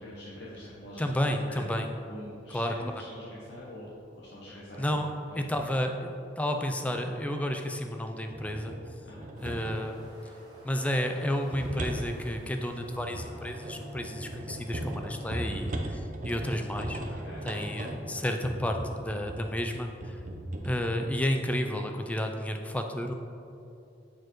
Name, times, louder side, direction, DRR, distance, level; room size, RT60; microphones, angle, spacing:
voice 1, 0.0-1.7 2.1-5.0 5.3-5.4 9.0-9.3 17.0-17.4, equal, 65° left, -8 dB, 0.9 m, -45 dB
voice 2, 1.0-1.9 2.5-2.7 4.8-6.1 6.4-8.7 9.4-10.0 10.6-20.2 20.6-23.1, equal, 10° left, 4 dB, 0.3 m, -31 dB
sound 1, 8.3-9.9 11.0-19.5 20.0-20.8, right 1 dB, 45° right, 0.6 m, -38 dB
sound 2, 9.4-15.8, right 1 dB, 25° right, 1.1 m, -53 dB
8.4 x 4.5 x 3.1 m, 2.7 s
head